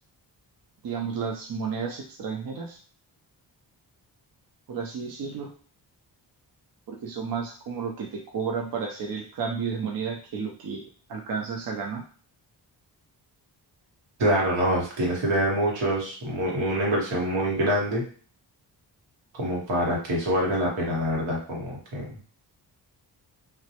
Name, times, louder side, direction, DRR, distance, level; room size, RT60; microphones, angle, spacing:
voice 1, 0.8-2.8 4.7-5.5 6.9-10.8 11.1-12.0, right 5 dB, 55° right, 1 dB, 0.6 m, -32 dB
voice 2, 14.2-18.0 19.3-22.0, equal, 90° right, -3 dB, 1.1 m, -25 dB
2.2 x 2.0 x 2.8 m, 0.43 s
cardioid pair, 80°, 43 cm